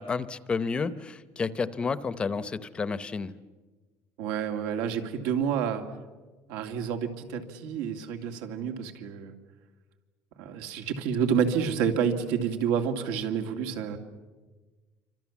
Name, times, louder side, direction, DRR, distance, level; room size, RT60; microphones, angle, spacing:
voice 1, 0.0-3.3, left 5 dB, 20° left, 15 dB, 0.7 m, -31 dB
voice 2, 4.2-5.8 6.5-9.3 10.4-14.0, right 7 dB, 90° right, 5 dB, 2.5 m, -29 dB
27.5 x 25.5 x 7.3 m, 1.3 s
cardioid pair, 170°, 6 cm